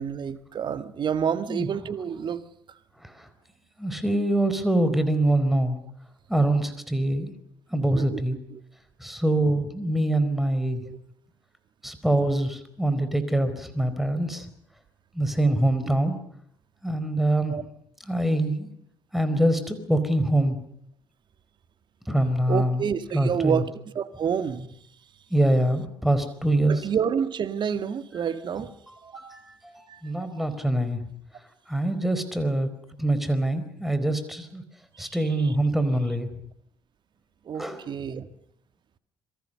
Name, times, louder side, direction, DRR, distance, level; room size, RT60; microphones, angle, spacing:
voice 1, 0.0-2.4 7.9-8.2 8.5-8.6 10.9-11.0 14.1-14.4 15.5-15.6 15.8-15.9 17.5-17.6 22.5-23.7 24.0-24.8 26.7-28.7 29.0-29.4 29.9-30.3 35.0-35.5 37.5-38.3, right 7 dB, 45° right, 1.7 m, -29 dB
voice 2, 3.8-5.8 6.3-7.3 7.7-8.4 9.0-10.8 11.8-14.4 15.1-16.2 16.8-17.6 18.1-18.7 19.1-20.6 22.1-22.8 23.1-23.6 25.3-26.8 28.9-31.0 31.7-32.7 33.0-34.6 35.0-36.3 37.6-37.8, right 1 dB, ahead, 4.6 m, -24 dB
27.5 x 23.0 x 6.8 m
figure-of-eight pair, 50°, 11 cm